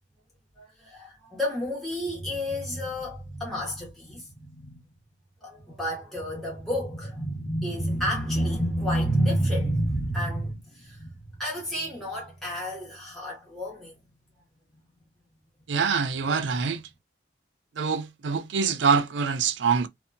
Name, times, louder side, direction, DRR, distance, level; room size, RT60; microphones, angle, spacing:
voice 1, 0.6-4.8 5.4-11.1 11.4-13.9, equal, ahead, 0.9 m, -29 dB
voice 2, 15.7-16.8 17.8-19.9, right 5 dB, 80° right, 0.5 m, -25 dB
2.7 x 2.1 x 2.5 m
head